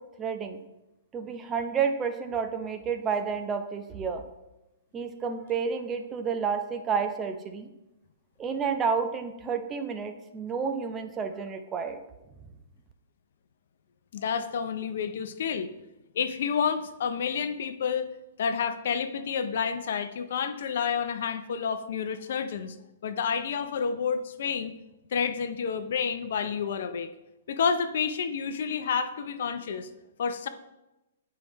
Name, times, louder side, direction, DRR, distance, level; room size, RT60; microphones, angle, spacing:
voice 1, 0.2-0.6 1.1-4.2 4.9-7.7 8.4-12.0, right 6 dB, 20° right, 6 dB, 0.7 m, -30 dB
voice 2, 14.1-15.7 16.1-18.1 18.4-22.7 23.0-24.7 25.1-27.1 27.5-29.9 30.2-30.5, left 6 dB, 60° left, 10 dB, 0.5 m, -29 dB
8.6 x 4.7 x 3.1 m, 0.95 s
figure-of-eight pair, 115°, 0 cm